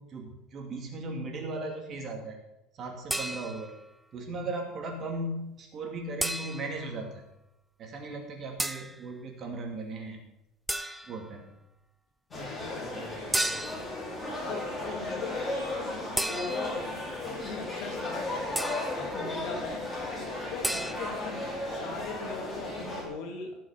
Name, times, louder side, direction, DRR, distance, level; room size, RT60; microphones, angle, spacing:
voice 1, 0.0-2.4 2.7-3.7 4.1-7.3 7.8-10.2 11.1-11.5, right 2 dB, 30° right, 2 dB, 2.4 m, -37 dB
sound 1, 3.1-3.8 6.2-6.8 8.6-9.0 10.7-11.2 13.3-14.0 16.2-16.9 18.6-19.0 20.6-20.9, right 1 dB, 5° right, 0.4 m, -32 dB
voice 2, 12.3-13.2 14.4-16.8 17.2-18.5 18.9-19.9 20.5-23.6, left 4 dB, 60° left, 2 dB, 2.7 m, -40 dB
sound 2, 12.3-23.0, left 2 dB, 10° left, 3.2 m, -35 dB
16.5 x 6.2 x 5.9 m, 0.90 s
cardioid pair, 165°, 0 cm